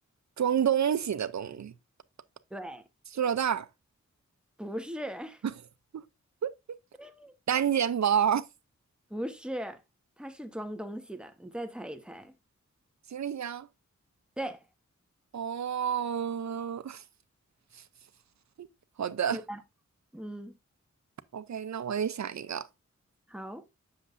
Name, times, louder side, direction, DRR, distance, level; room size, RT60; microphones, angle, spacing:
voice 1, 0.4-1.7 3.1-3.7 5.9-6.1 6.4-6.5 7.5-8.5 13.1-13.7 15.3-17.0 17.7-17.8 18.6-18.7 19.0-19.4 21.3-22.7, right 8 dB, 65° right, 0.6 m, -29 dB
voice 2, 2.5-2.9 4.6-5.4 7.0-7.3 9.1-9.8 10.2-12.3 14.4-14.6 19.3-19.6 20.1-20.5 23.3-23.6, equal, 5° right, 0.9 m, -38 dB
7.6 x 6.6 x 2.5 m
wide cardioid pair, 60°, 30 cm